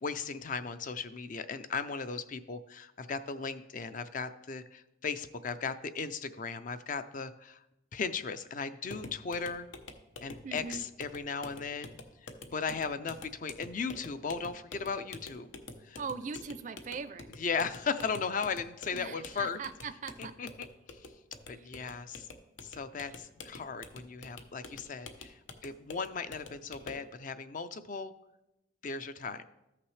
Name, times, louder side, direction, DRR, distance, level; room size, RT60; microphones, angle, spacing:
voice 1, 0.0-7.6 7.9-9.7 10.2-12.0 12.2-15.5 15.8-16.0 17.4-19.6 20.2-20.7 21.5-22.3 22.6-28.1 28.8-29.5, left 5 dB, 40° left, 12 dB, 0.4 m, -37 dB
sound 1, 8.9-27.1, left 3 dB, 85° left, 0.8 m, -49 dB
voice 2, 10.4-10.8 16.0-17.3 18.9-20.3 21.5-21.7, right 5 dB, 40° right, 12 dB, 0.4 m, -40 dB
14.0 x 5.8 x 3.2 m, 0.93 s
head